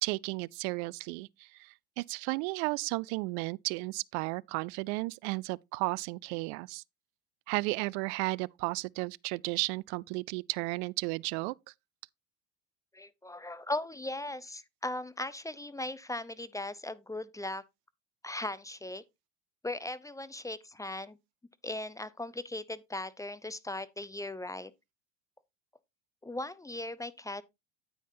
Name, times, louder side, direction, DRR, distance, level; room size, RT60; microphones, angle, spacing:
voice 1, 0.0-6.8 7.5-11.5, right 24 dB, 60° right, 0.5 m, -34 dB
voice 2, 12.9-17.6 18.2-19.0 19.6-21.2 21.6-24.7 26.2-27.4, left 2 dB, 10° left, 0.7 m, -38 dB
9.3 x 9.2 x 2.7 m
hypercardioid pair, 85°, 38 cm